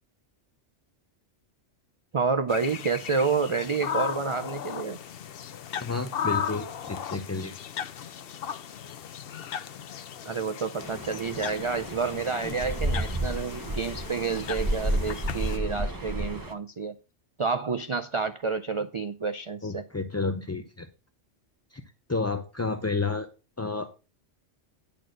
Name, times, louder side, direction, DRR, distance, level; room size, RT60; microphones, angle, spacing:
voice 1, 2.1-5.0 10.3-16.9 17.4-19.8, right 4 dB, 50° right, 0.4 m, -29 dB
sound 1, 2.5-15.6, left 8 dB, 60° left, 0.8 m, -37 dB
voice 2, 5.8-7.6 12.4-12.6 19.6-20.9 21.7-21.8 22.1-23.3 23.6-23.9, left 3 dB, 20° left, 0.4 m, -31 dB
sound 2, 10.8-16.5, right 1 dB, 20° right, 1.0 m, -31 dB
10.5 x 4.3 x 6.4 m
omnidirectional pair, 1.2 m